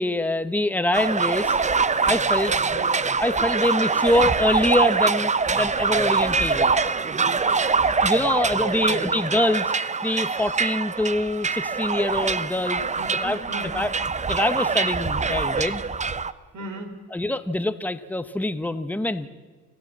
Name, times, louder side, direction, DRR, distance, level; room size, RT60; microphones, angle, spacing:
voice 1, 0.0-1.6 2.0-2.5 3.2-6.9 8.0-9.7 10.0-12.8 13.2-13.4 13.7-13.9 14.3-15.8 17.1-19.3, left 1 dB, 5° left, 11 dB, 1.1 m, -24 dB
sound 1, 0.9-16.3, right 4 dB, 25° right, 0.8 m, -24 dB
voice 2, 2.5-2.9 8.6-9.1 12.9-13.8 16.5-16.9, right 3 dB, 70° right, 5 dB, 4.3 m, -35 dB
27.0 x 15.0 x 7.5 m, 1.5 s
cardioid pair, 90°, 30 cm